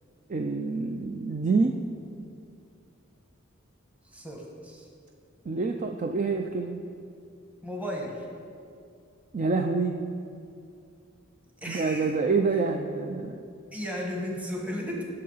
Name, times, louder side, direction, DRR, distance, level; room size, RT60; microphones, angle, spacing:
voice 1, 0.3-1.8 5.5-6.8 9.3-10.0 11.7-13.4, right 4 dB, 40° right, 5 dB, 0.4 m, -27 dB
voice 2, 4.1-4.9 7.6-8.2 11.6-12.1 13.7-15.0, equal, 5° right, -2 dB, 1.3 m, -34 dB
12.0 x 6.7 x 5.6 m, 2.4 s
head